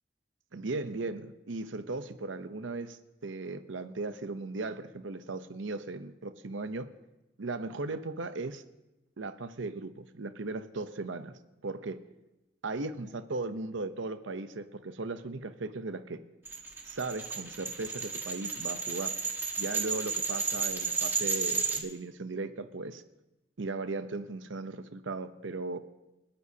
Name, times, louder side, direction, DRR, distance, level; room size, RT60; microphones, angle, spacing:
voice 1, 0.5-6.9 7.4-8.6 9.2-12.0 12.6-16.2 16.8-19.1 19.6-23.0 23.6-25.8, right 3 dB, 90° right, 10 dB, 0.8 m, -37 dB
sound 1, 16.5-21.8, right 5 dB, 10° right, 1.4 m, -32 dB
29.0 x 9.9 x 2.8 m, 0.99 s
head